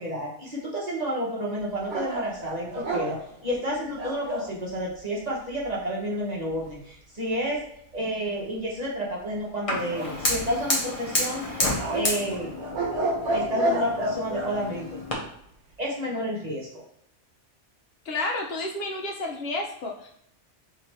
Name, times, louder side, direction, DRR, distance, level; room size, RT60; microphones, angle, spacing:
voice 1, 0.0-7.6 7.9-12.5 13.3-14.9 15.8-16.7, equal, 40° right, -4 dB, 0.9 m, -30 dB
sound 1, 1.9-4.5 9.9-10.8 11.8-14.5, right 1 dB, 75° right, 1.1 m, -30 dB
Fire, 9.7-15.1, left 1 dB, 30° left, 0.8 m, -30 dB
voice 2, 18.1-20.1, left 2 dB, 65° left, 0 dB, 0.7 m, -31 dB
3.2 x 2.8 x 4.1 m, 0.72 s
omnidirectional pair, 1.2 m